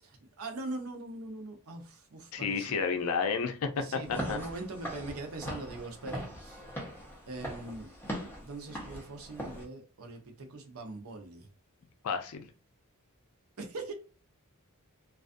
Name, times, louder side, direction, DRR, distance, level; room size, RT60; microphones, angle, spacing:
voice 1, 0.0-2.7 3.8-6.6 7.3-7.9 8.4-11.5 13.6-13.9, right 2 dB, 75° right, 0.6 m, -41 dB
voice 2, 2.3-3.8 4.1-4.4 12.0-12.5, left 5 dB, 80° left, 0.5 m, -31 dB
Walk footsteps / Siren, 4.0-9.6, equal, 10° left, 0.7 m, -41 dB
2.4 x 2.3 x 2.5 m
head